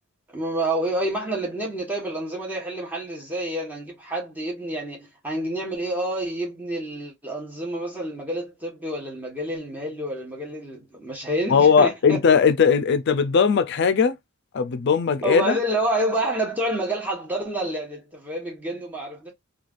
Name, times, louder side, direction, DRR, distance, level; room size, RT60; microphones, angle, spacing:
voice 1, 0.3-12.2 15.2-19.3, right 1 dB, 10° right, 1.0 m, -28 dB
voice 2, 11.5-14.2 14.5-15.6, left 6 dB, 55° left, 0.4 m, -19 dB
3.2 x 2.3 x 2.4 m
head